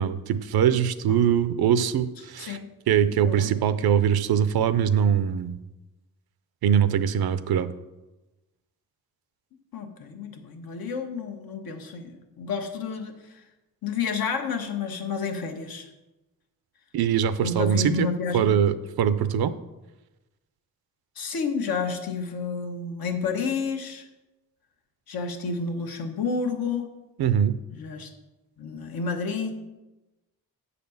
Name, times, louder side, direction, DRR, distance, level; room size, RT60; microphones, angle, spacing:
voice 1, 0.0-2.6 2.9-5.6 6.6-7.7 16.9-18.1 18.3-19.5 27.2-27.6, right 8 dB, 90° right, 13 dB, 0.6 m, -22 dB
voice 2, 2.4-2.7 3.2-3.5 9.7-13.4 13.8-15.9 17.4-18.6 21.2-24.1 25.1-26.9 27.7-28.1 28.6-29.5, left 5 dB, 75° left, 5 dB, 1.2 m, -30 dB
8.2 x 4.2 x 6.9 m, 1.1 s
cardioid pair, 100°, 36 cm